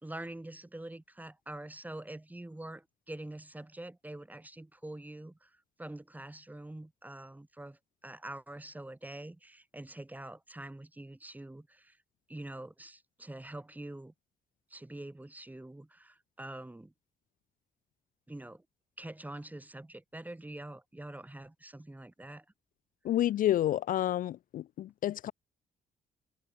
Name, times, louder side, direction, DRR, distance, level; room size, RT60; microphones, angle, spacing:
voice 1, 0.0-5.5 5.8-12.0 12.3-14.1 14.7-16.9 18.3-18.6 19.0-22.4, right 1 dB, 10° right, 1.6 m, -45 dB
voice 2, 23.0-25.3, left 12 dB, 65° left, 0.4 m, -29 dB
supercardioid pair, 65°, 15 cm